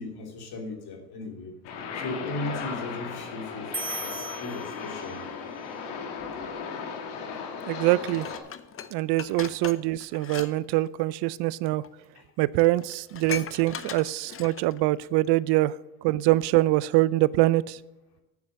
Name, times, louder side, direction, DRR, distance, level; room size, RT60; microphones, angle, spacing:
voice 1, 0.0-1.6 1.9-5.2 12.1-12.3, left 2 dB, 60° left, 3.0 m, -37 dB
sound 1, 1.6-8.4, left 5 dB, 75° left, 1.9 m, -36 dB
sound 2, 3.7-5.4, right 2 dB, 10° right, 1.0 m, -37 dB
voice 2, 7.7-8.3 8.9-11.8 12.4-15.7 16.0-17.8, right 18 dB, 65° right, 0.5 m, -24 dB
Dishes pots and pans, 8.1-10.5 10.8-11.0 11.8-11.9 12.3-12.4 12.6-14.8 15.2-15.3, left 8 dB, 30° left, 0.7 m, -39 dB
9.4 x 7.3 x 6.4 m
supercardioid pair, 95°, 42 cm